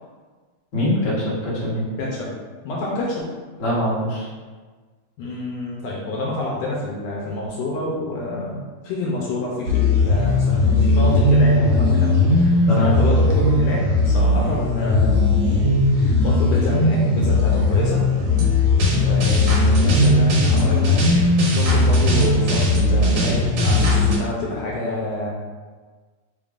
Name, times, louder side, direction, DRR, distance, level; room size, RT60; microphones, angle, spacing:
voice 1, 0.7-1.8 3.6-4.2 12.7-12.9, left 1 dB, 55° left, -8 dB, 0.8 m, -22 dB
voice 2, 2.0-2.3 2.6-3.3 5.2-15.3 15.9-18.0 19.0-21.0 21.5-25.3, left 2 dB, 80° left, -3 dB, 1.6 m, -27 dB
sound 1, 9.7-24.2, left 2 dB, 65° right, 1.8 m, -17 dB
4.4 x 3.6 x 2.4 m, 1.4 s
omnidirectional pair, 3.3 m